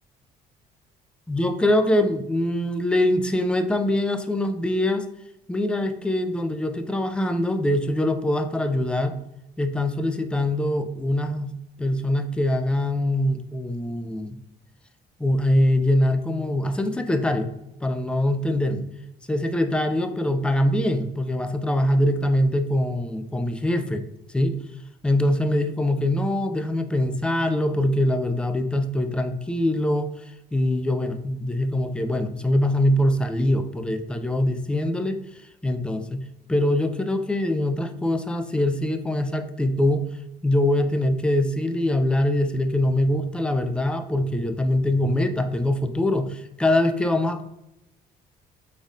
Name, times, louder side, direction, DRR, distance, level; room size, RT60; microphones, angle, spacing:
voice 1, 1.3-5.1 5.5-9.2 9.6-11.5 11.8-14.4 15.2-17.5 17.8-18.9 19.3-24.0 24.3-24.6 25.0-30.1 30.5-35.2 35.6-36.2 36.5-40.1 40.4-47.4, left 1 dB, 5° left, 8 dB, 0.4 m, -23 dB
5.3 x 4.0 x 2.4 m, 0.85 s
cardioid pair, 110°, 17 cm